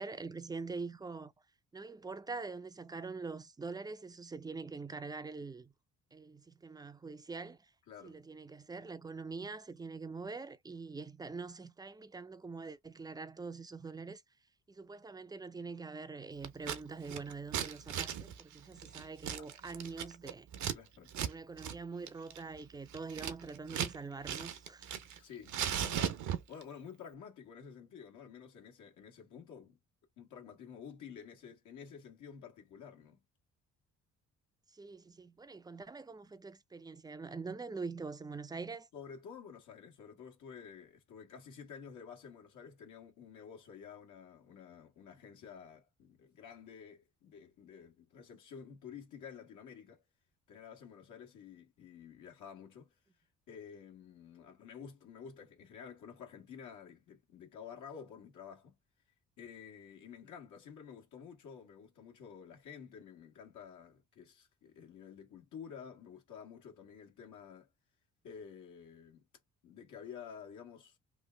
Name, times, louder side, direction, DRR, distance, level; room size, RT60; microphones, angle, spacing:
voice 1, 0.0-1.3 1.7-5.7 6.1-7.7 8.0-14.2 14.7-20.5 21.2-24.9 34.7-38.9, right 4 dB, 15° right, 0.4 m, -44 dB
voice 2, 7.9-8.2 20.7-21.1 25.2-29.8 30.2-33.2 38.9-50.0 50.5-52.9 53.5-58.8 59.4-67.7 68.2-69.3 69.6-71.0, left 7 dB, 75° left, 1.4 m, -51 dB
Scissors, 16.4-16.8 17.1-20.8 21.1-21.3 21.6-21.8 22.1-24.0 24.2-25.2 25.5-26.6, right 9 dB, 75° right, 0.7 m, -37 dB
3.1 x 2.3 x 3.3 m
cardioid pair, 90°, 30 cm